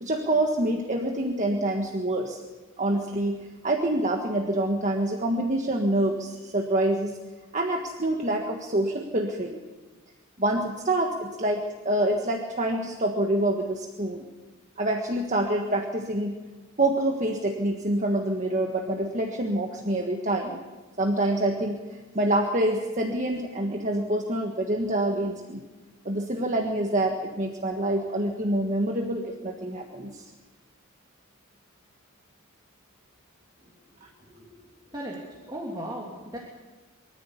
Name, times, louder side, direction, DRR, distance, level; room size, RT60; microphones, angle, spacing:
voice 1, 0.0-2.4 2.8-7.2 7.5-9.6 10.4-14.3 14.8-16.4 16.8-20.6 21.0-21.8 22.1-25.6 26.0-30.2 34.0-34.1, right 1 dB, 35° right, 2 dB, 1.6 m, -26 dB
voice 2, 34.0-36.4, right 1 dB, 20° right, -3 dB, 2.9 m, -38 dB
24.0 x 14.0 x 8.4 m, 1.3 s
head